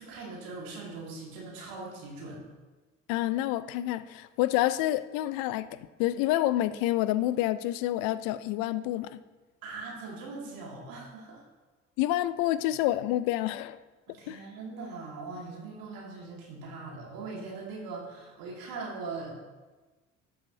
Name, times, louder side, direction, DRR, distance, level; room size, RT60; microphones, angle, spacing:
voice 1, 0.0-2.4 9.6-11.4 14.1-19.4, right 3 dB, 65° right, -3 dB, 2.4 m, -41 dB
voice 2, 3.1-9.2 12.0-13.8 14.3-14.4, left 14 dB, 65° left, 15 dB, 0.5 m, -28 dB
12.5 x 5.6 x 2.8 m, 1.2 s
hypercardioid pair, 55°, 37 cm